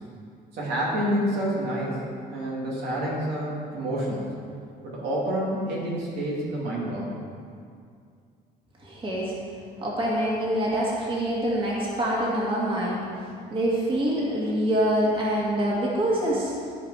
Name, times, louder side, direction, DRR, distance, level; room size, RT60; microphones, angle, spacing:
voice 1, 0.5-2.0 2.3-4.3 4.8-7.1, right 1 dB, 75° right, -5 dB, 2.7 m, -28 dB
voice 2, 8.8-9.3 9.8-13.1 13.5-16.5, right 1 dB, 30° right, -5 dB, 2.1 m, -25 dB
13.5 x 5.1 x 4.9 m, 2.3 s
cardioid pair, 110°, 17 cm